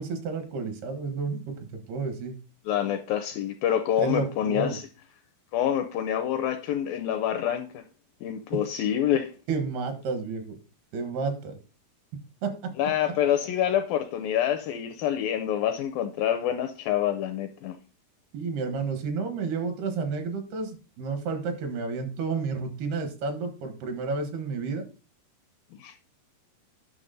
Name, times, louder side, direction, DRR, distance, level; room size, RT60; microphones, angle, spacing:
voice 1, 0.0-2.3 4.0-4.8 9.5-10.6 10.9-11.6 12.4-12.5 18.3-24.8, right 4 dB, 75° right, 6 dB, 3.5 m, -31 dB
voice 2, 2.7-4.9 5.5-7.8 8.2-9.3 12.8-17.8 25.8-26.0, left 10 dB, 85° left, 8 dB, 2.1 m, -27 dB
11.0 x 6.0 x 4.0 m, 0.34 s
omnidirectional pair, 4.7 m